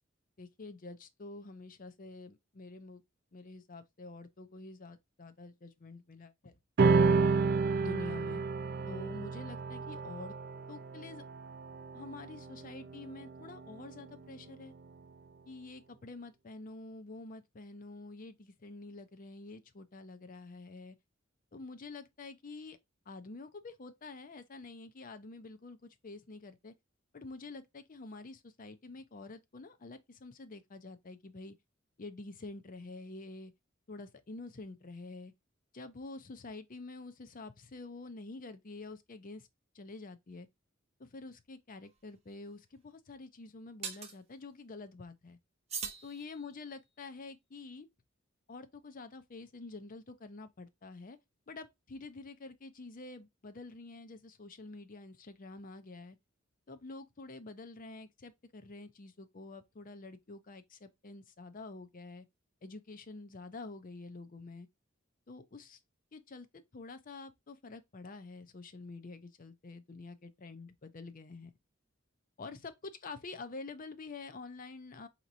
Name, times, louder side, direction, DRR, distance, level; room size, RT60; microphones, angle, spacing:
voice 1, 0.4-3.0 3.3-6.6 7.8-8.4 8.9-10.3 10.7-11.2 11.9-14.7 15.5-21.0 21.5-22.8 23.1-26.7 27.1-31.6 32.0-33.5 33.9-35.3 35.7-39.5 39.7-40.5 41.0-45.4 46.0-47.9 48.5-51.2 51.5-56.2 56.7-62.3 62.6-64.7 65.3-65.8 66.1-71.5 72.4-75.1, left 3 dB, 45° left, 0.6 m, -47 dB
sound 1, 6.8-13.5, right 4 dB, 55° right, 0.4 m, -30 dB
sound 2, 41.8-42.0 43.8-44.2 45.7-46.8, right 6 dB, 35° right, 0.9 m, -42 dB
5.0 x 2.9 x 2.6 m
head